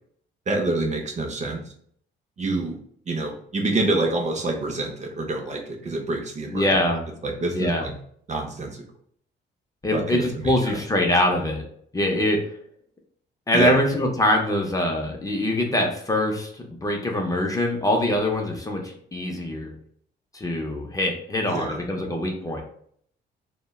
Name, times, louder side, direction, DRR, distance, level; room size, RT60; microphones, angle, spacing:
voice 1, 0.5-1.6 2.4-2.8 3.1-6.7 7.2-8.0 8.3-8.8 9.9-10.8 13.5-13.7 21.5-21.8, right 2 dB, 35° right, 3 dB, 0.6 m, -27 dB
voice 2, 6.5-7.0 7.5-7.9 9.8-11.6 11.9-12.4 13.5-19.7 20.3-22.6, left 1 dB, 15° left, 1 dB, 0.5 m, -23 dB
3.2 x 2.1 x 2.2 m, 0.63 s
cardioid pair, 90°, 20 cm